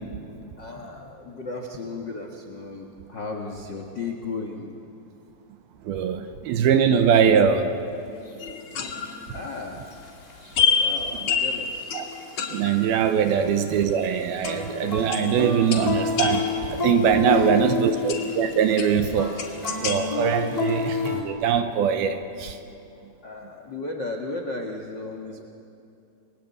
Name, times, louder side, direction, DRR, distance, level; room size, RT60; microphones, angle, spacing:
voice 1, 0.6-4.7 8.7-8.9 9.3-9.8 10.7-12.5 13.2-13.4 17.3-17.9 20.5-20.6 23.2-25.4, left 3 dB, 75° left, 2 dB, 1.0 m, -35 dB
voice 2, 5.9-7.8 11.9-12.1 12.5-19.4 19.8-22.6, right 8 dB, 75° right, 8 dB, 2.5 m, -22 dB
sound 1, 8.3-8.4 9.0-9.1 9.9-11.1 11.4-11.7 12.0-13.6 13.9-21.2, left 5 dB, 10° left, 2.6 m, -29 dB
sound 2, 8.4-10.0 10.6-13.6 13.9-14.0 14.4-14.9 15.1-17.1 18.1-20.0, left 6 dB, 50° left, 2.5 m, -28 dB
29.5 x 22.5 x 8.5 m, 2.7 s
omnidirectional pair, 5.1 m